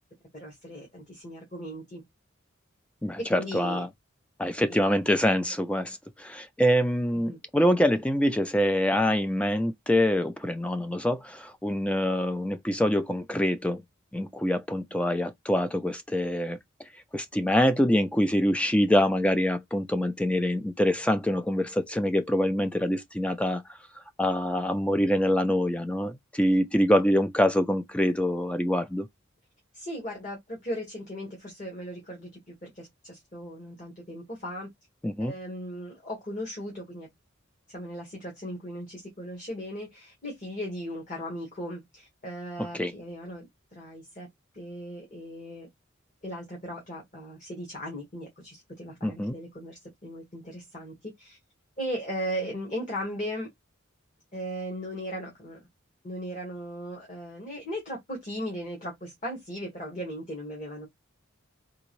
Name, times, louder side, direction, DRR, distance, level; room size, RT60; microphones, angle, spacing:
voice 1, 0.3-2.0 3.2-3.8 4.7-4.8 7.1-7.4 29.7-34.7 35.2-37.1 37.7-44.3 44.5-45.7 46.2-51.4 51.8-53.5 54.3-55.7 56.0-60.9, equal, 35° left, 1.6 m, -37 dB
voice 2, 3.0-3.9 4.4-13.8 14.1-16.6 17.1-23.6 24.2-29.1 35.0-35.3 42.7-42.9 49.0-49.4, equal, 5° left, 0.3 m, -25 dB
3.7 x 2.6 x 3.1 m
head